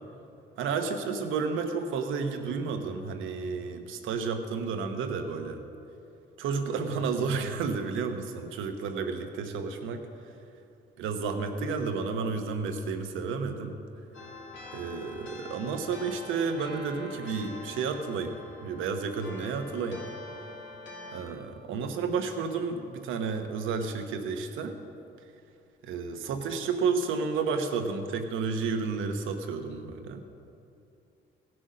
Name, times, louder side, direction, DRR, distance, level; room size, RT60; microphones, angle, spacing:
voice 1, 0.6-5.6 6.4-10.3 11.0-13.8 14.7-20.0 21.1-24.8 25.8-30.2, right 5 dB, 85° right, 6 dB, 1.1 m, -31 dB
sound 1, 14.1-21.2, left 2 dB, 70° left, 2.4 m, -44 dB
16.0 x 6.1 x 6.3 m, 2.7 s
cardioid pair, 90°, 20 cm